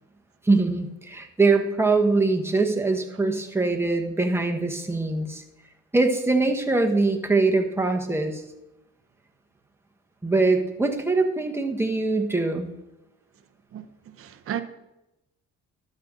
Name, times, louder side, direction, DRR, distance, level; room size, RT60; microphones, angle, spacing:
voice 1, 0.4-5.4 5.9-8.4 10.2-12.7, right 3 dB, 10° right, 1.4 m, -23 dB
voice 2, 13.7-14.6, right 10 dB, 50° right, 0.7 m, -34 dB
12.0 x 7.6 x 3.8 m
cardioid pair, 90°, 30 cm